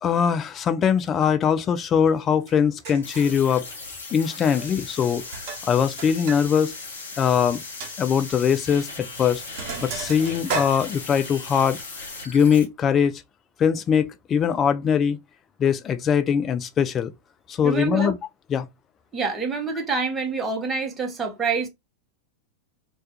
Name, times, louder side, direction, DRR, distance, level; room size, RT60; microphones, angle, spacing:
voice 1, 0.0-3.6 4.1-5.2 5.7-6.7 7.2-7.6 8.0-9.4 9.8-11.8 12.3-13.2 13.6-15.2 15.6-17.1 17.5-18.2 18.5-18.7, left 7 dB, 30° left, 0.4 m, -21 dB
Sink (filling or washing), 2.5-2.6 2.8-3.4 4.3-4.8 5.0-6.4 6.7-6.8 7.2-7.3 7.8-7.9 8.8-9.0 9.3-11.4, right 5 dB, 50° right, 0.9 m, -34 dB
sound 1, 3.0-12.6, left 3 dB, 75° left, 1.0 m, -38 dB
voice 2, 17.6-18.1 19.1-21.7, right 4 dB, 20° right, 0.8 m, -26 dB
2.3 x 2.2 x 2.7 m
hypercardioid pair, 90°, 0 cm